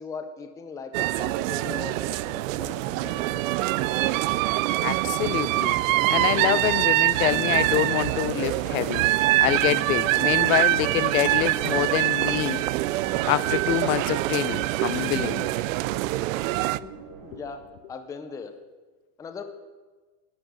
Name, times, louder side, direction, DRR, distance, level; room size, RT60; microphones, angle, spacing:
voice 1, 0.0-3.5 16.8-16.9 17.2-17.6 17.9-18.5 19.2-19.4, left 5 dB, 10° left, 0.6 m, -39 dB
sound 1, 0.9-16.8, right 18 dB, 70° right, 0.5 m, -24 dB
sound 2, 2.4-18.0, right 3 dB, 40° right, 2.2 m, -43 dB
voice 2, 4.8-5.8 6.1-9.1 9.4-12.6 13.2-15.5 17.3-17.4, left 16 dB, 75° left, 0.8 m, -26 dB
11.0 x 10.5 x 9.2 m
supercardioid pair, 175°, 42 cm